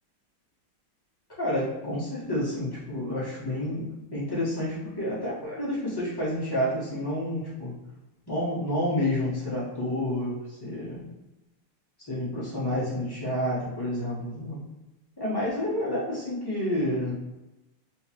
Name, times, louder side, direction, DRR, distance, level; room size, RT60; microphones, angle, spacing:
voice 1, 1.4-7.7 8.3-11.0 12.1-14.6 15.2-17.1, left 1 dB, 25° left, -9 dB, 0.5 m, -29 dB
3.2 x 3.1 x 2.9 m, 0.98 s
omnidirectional pair, 2.4 m